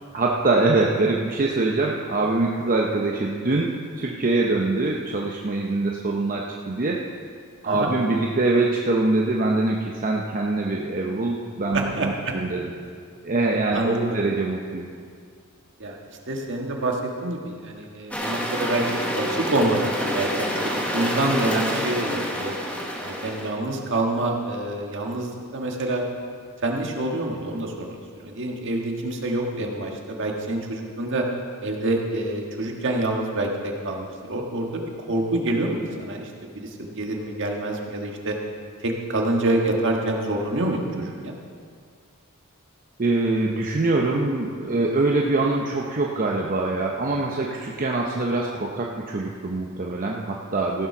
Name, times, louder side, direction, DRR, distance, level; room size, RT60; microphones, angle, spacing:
voice 1, 0.1-7.0 7.6-12.7 13.2-14.9 43.0-50.9, right 2 dB, 40° right, -1 dB, 0.8 m, -24 dB
voice 2, 11.7-12.3 13.7-14.2 15.8-16.0 16.3-18.8 19.1-22.5 23.0-26.0 26.6-31.2 31.6-38.4 38.8-41.3, right 2 dB, 60° right, 1 dB, 1.6 m, -27 dB
sound 1, 18.1-23.5, equal, 5° left, 1.4 m, -27 dB
15.0 x 7.1 x 5.9 m, 2.1 s
head